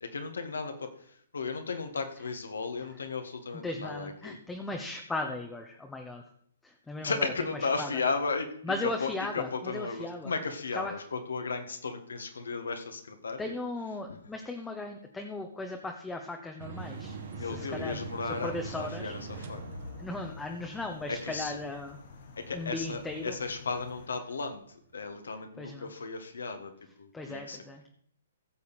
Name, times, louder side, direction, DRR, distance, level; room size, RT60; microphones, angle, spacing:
voice 1, 0.0-4.4 7.0-13.6 14.1-14.2 17.3-19.6 21.1-21.6 22.4-26.7 27.0-27.6, left 4 dB, 75° left, 7 dB, 1.7 m, -35 dB
voice 2, 3.6-6.2 6.6-7.3 7.8-7.9 8.6-10.3 10.7-10.9 13.4-18.0 18.4-19.1 20.0-22.0 22.5-23.3 25.6-25.9 27.1-27.9, left 2 dB, 10° left, 2 dB, 1.0 m, -37 dB
sound 1, 16.6-24.6, right 4 dB, 60° right, 2.2 m, -44 dB
sound 2, 16.8-24.1, left 7 dB, 60° left, 1.3 m, -51 dB
15.5 x 7.0 x 4.3 m, 0.65 s
figure-of-eight pair, 125°, 0 cm